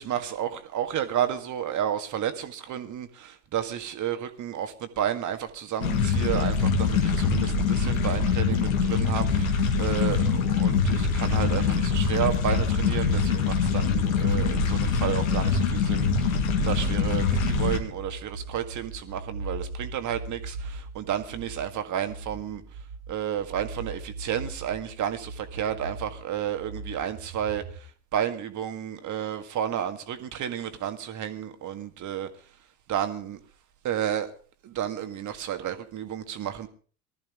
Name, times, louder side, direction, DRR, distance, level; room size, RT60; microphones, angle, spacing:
voice 1, 0.0-22.6 23.1-32.3 32.9-33.4 33.8-34.3 34.6-36.7, right 10 dB, 45° right, 1.8 m, -31 dB
sound 1, 5.8-17.8, left 5 dB, 80° left, 2.0 m, -24 dB
sound 2, 17.8-27.8, right 2 dB, 70° right, 1.7 m, -40 dB
19.5 x 13.5 x 3.6 m
hypercardioid pair, 70°, 41 cm